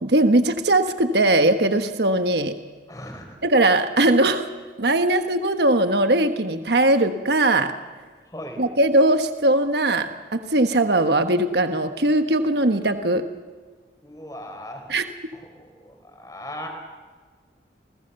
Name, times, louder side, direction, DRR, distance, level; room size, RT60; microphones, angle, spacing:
voice 1, 0.0-2.5 3.4-4.5 4.8-7.7 8.6-13.2 14.9-15.1, right 1 dB, 65° right, 7 dB, 1.2 m, -20 dB
voice 2, 2.9-3.2 5.1-5.2 8.3-8.6 14.0-14.8 15.6-16.7, left 1 dB, 20° left, 4 dB, 4.6 m, -37 dB
28.5 x 20.5 x 7.0 m, 1.5 s
head